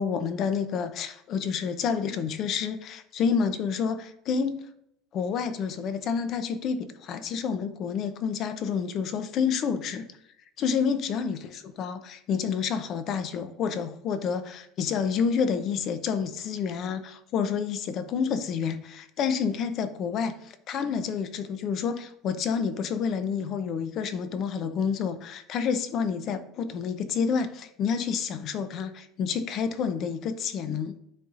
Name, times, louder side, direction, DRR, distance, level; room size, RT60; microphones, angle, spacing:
voice 1, 0.0-4.6 5.1-10.1 10.6-30.9, left 6 dB, 50° left, 0.6 m, -29 dB
9.8 x 4.1 x 2.6 m
supercardioid pair, 120°, 0 cm